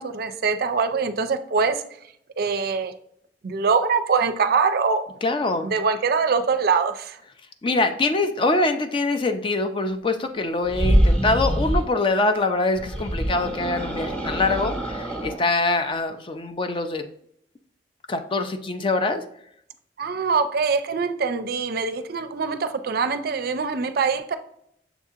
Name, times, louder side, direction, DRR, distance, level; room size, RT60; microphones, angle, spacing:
voice 1, 0.0-1.8 2.4-2.9 3.4-5.0 5.6-7.2 20.0-24.4, right 5 dB, 60° right, 9 dB, 0.4 m, -23 dB
voice 2, 5.2-5.7 7.6-17.0 18.1-19.2, left 2 dB, 30° left, 7 dB, 0.4 m, -24 dB
sound 1, 10.6-11.9 12.7-15.4, equal, 10° left, 0.8 m, -24 dB
6.8 x 2.8 x 2.4 m, 0.70 s
head